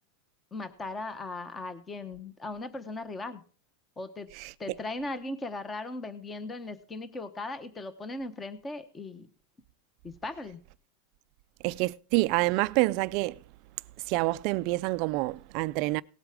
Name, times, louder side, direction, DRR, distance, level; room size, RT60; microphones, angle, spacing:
voice 1, 0.5-3.4 4.0-4.3 4.6-9.3 10.0-10.6, left 2 dB, 15° left, 1.0 m, -38 dB
voice 2, 11.6-13.4 14.1-16.0, right 21 dB, 45° right, 0.4 m, -27 dB
18.5 x 8.0 x 3.6 m
supercardioid pair, 155°, 0 cm